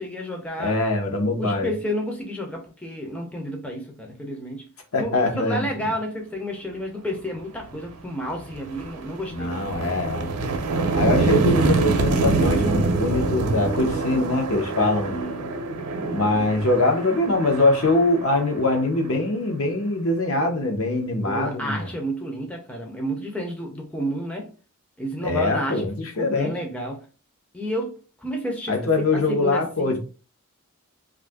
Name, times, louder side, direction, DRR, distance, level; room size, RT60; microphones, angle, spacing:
voice 1, 0.0-0.8 1.4-4.7 5.0-9.5 15.1-15.5 21.3-24.5 25.0-25.9 26.2-27.1 27.5-30.0, equal, 5° left, 0.4 m, -31 dB
voice 2, 0.6-1.7 4.9-5.7 9.3-10.3 10.9-15.2 16.1-21.9 25.2-26.5 28.7-30.0, left 2 dB, 70° left, 0.8 m, -23 dB
sound 1, 7.7-7.9 8.3-19.1, right 3 dB, 85° right, 0.5 m, -25 dB
2.6 x 2.4 x 3.4 m
head